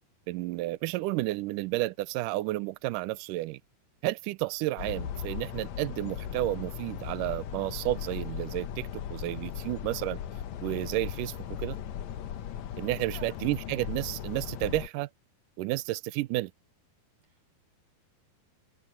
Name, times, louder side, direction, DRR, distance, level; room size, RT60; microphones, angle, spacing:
voice 1, 0.3-3.6 4.0-10.2 10.6-11.8 12.8-15.1 15.6-16.5, right 18 dB, 80° right, 1.9 m, -31 dB
sound 1, 4.8-14.9, left 9 dB, 80° left, 1.6 m, -38 dB
voice 2, 12.7-13.4 17.3-17.5, right 1 dB, 40° right, 7.6 m, -53 dB
omnidirectional pair, 4.7 m